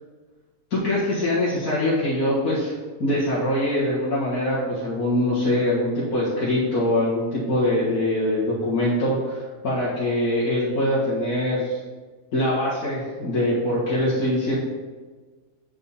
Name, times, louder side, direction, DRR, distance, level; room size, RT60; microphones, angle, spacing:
voice 1, 0.7-11.8 12.3-14.6, left 1 dB, 85° left, -9 dB, 2.0 m, -23 dB
7.1 x 4.6 x 4.1 m, 1.4 s
omnidirectional pair, 1.6 m